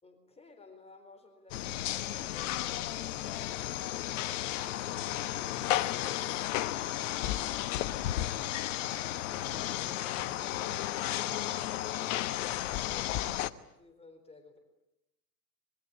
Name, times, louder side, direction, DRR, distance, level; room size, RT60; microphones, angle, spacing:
voice 1, 0.0-3.5 12.8-14.6, left 3 dB, 15° left, 5 dB, 4.0 m, -55 dB
sound 1, 1.5-13.5, left 14 dB, 50° left, 1.1 m, -33 dB
voice 2, 8.8-12.2, right 6 dB, 35° right, 5 dB, 5.4 m, -56 dB
25.5 x 22.0 x 8.7 m, 0.87 s
figure-of-eight pair, 95°, 47 cm